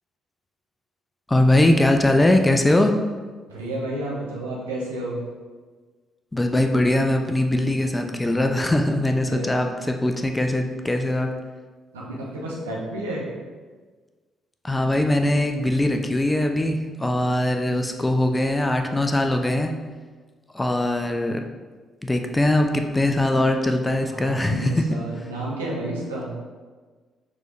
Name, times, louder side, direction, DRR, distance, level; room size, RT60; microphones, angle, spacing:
voice 1, 1.3-2.9 6.3-11.3 14.6-19.7 20.5-21.4 22.0-24.8, left 1 dB, 15° left, 5 dB, 0.4 m, -21 dB
voice 2, 3.5-5.2 9.3-9.5 11.9-13.3 24.1-26.3, right 1 dB, 80° right, -4 dB, 0.8 m, -31 dB
6.1 x 3.3 x 2.5 m, 1.4 s
figure-of-eight pair, 45°, 0 cm